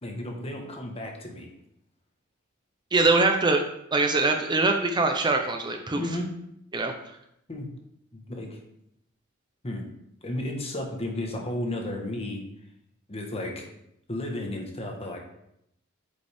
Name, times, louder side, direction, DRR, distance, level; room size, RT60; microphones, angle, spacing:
voice 1, 0.0-1.5 6.0-6.3 7.5-7.7 8.1-8.6 9.6-9.8 10.2-12.4 13.1-13.7 14.1-15.2, left 1 dB, 30° left, 2 dB, 1.3 m, -33 dB
voice 2, 2.9-3.6 3.9-6.0 6.7-6.9, right 3 dB, 20° right, 4 dB, 0.6 m, -23 dB
8.9 x 5.3 x 3.5 m, 0.79 s
head